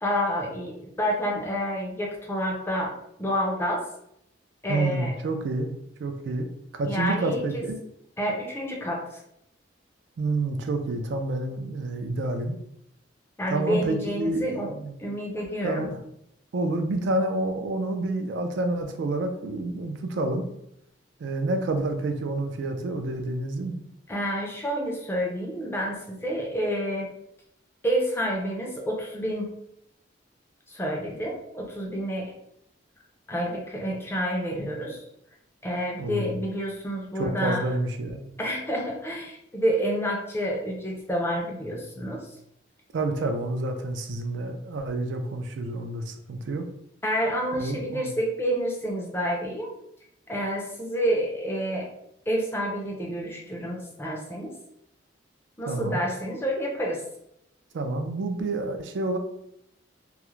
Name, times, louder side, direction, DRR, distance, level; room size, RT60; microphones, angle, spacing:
voice 1, 0.0-2.9 3.2-3.8 4.6-5.2 6.9-7.6 8.2-9.2 13.4-14.7 15.0-15.9 24.1-27.1 27.8-29.5 30.7-32.3 33.3-35.0 35.6-37.6 38.4-42.3 47.0-49.7 50.3-51.9 52.3-54.5 55.6-57.0, equal, 10° left, -1 dB, 0.4 m, -29 dB
voice 2, 4.7-7.8 10.2-12.6 13.5-14.9 15.6-16.0 16.5-20.5 21.2-23.8 36.0-36.3 37.2-38.2 42.9-46.6 47.6-48.1 55.7-56.0 57.7-59.2, right 2 dB, 70° right, 6 dB, 0.3 m, -29 dB
2.3 x 2.0 x 3.0 m, 0.77 s
head